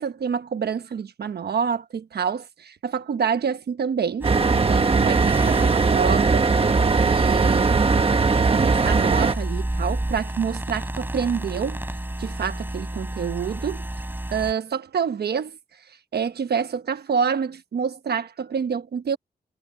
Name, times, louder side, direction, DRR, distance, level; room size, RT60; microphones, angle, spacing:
voice 1, 0.0-6.5 6.9-7.8 8.5-11.8 12.2-13.9 14.3-15.6 15.9-19.2, right 7 dB, 75° right, 1.2 m, -27 dB
sound 1, 4.2-14.5, right 1 dB, 10° right, 5.5 m, -31 dB
sound 2, 4.2-9.3, right 4 dB, 35° right, 1.3 m, -19 dB
wide cardioid pair, 130°, 17 cm